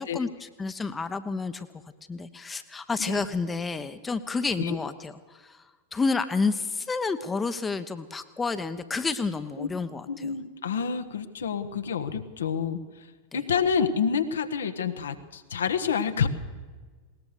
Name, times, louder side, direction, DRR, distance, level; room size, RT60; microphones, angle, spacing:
voice 1, 0.0-1.7 2.1-5.6 5.9-10.3 13.3-13.4, left 4 dB, 15° left, 11 dB, 1.1 m, -30 dB
voice 2, 10.1-16.3, left 6 dB, 65° left, 9 dB, 1.3 m, -28 dB
20.5 x 19.0 x 6.7 m, 1.4 s
figure-of-eight pair, 90°, 0 cm